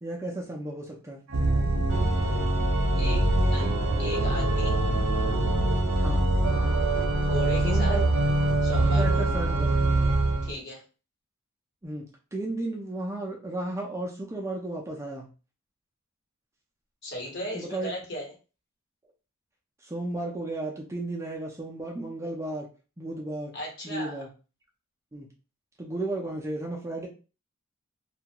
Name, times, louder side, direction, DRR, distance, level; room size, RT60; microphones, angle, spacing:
voice 1, 0.0-1.2 5.9-6.3 7.6-8.0 8.9-9.9 11.8-15.3 17.5-17.9 19.8-22.7 23.0-23.5 23.8-24.3 25.1-25.3 25.8-27.1, right 2 dB, 15° right, -1 dB, 0.4 m, -34 dB
Organ, 1.3-10.5, right 2 dB, 75° right, 0.6 m, -24 dB
voice 2, 3.0-4.8 7.2-8.0 8.6-9.2 10.4-10.8 17.0-18.3 23.5-24.2, left 1 dB, 55° left, -2 dB, 1.1 m, -37 dB
2.4 x 2.3 x 2.8 m, 0.34 s
head